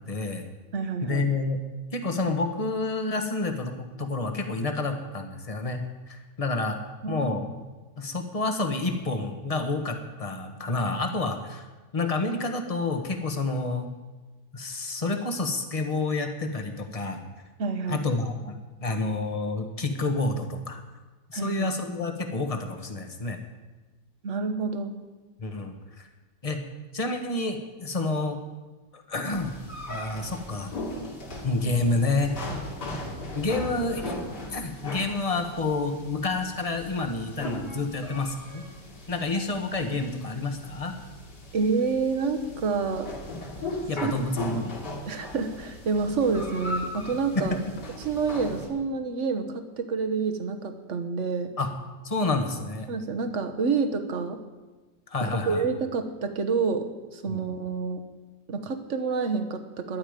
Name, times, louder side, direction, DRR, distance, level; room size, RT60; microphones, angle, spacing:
voice 1, 0.1-0.4 1.0-1.6 1.9-6.8 7.1-7.5 8.0-11.6 11.9-13.9 14.5-17.2 17.9-18.5 18.8-20.8 21.3-23.4 25.4-26.1 26.4-26.6 26.9-28.4 28.9-29.6 29.9-30.7 31.4-32.3 33.3-34.1 34.5-38.6 39.1-40.9 43.9-44.7 47.3-47.6 51.6-51.7 52.0-52.9 55.1-55.6 57.3-57.5, left 3 dB, 20° left, 5 dB, 1.2 m, -29 dB
voice 2, 0.7-1.2 7.0-7.3 17.6-18.1 21.3-21.7 24.2-25.0 41.5-43.1 44.0-44.1 45.1-47.6 48.0-51.5 52.9-54.4 55.2-58.0 58.5-60.0, right 4 dB, 45° right, 7 dB, 1.3 m, -28 dB
sound 1, 29.3-48.7, left 2 dB, 60° left, 3.1 m, -38 dB
20.0 x 11.0 x 5.1 m, 1.3 s
omnidirectional pair, 2.0 m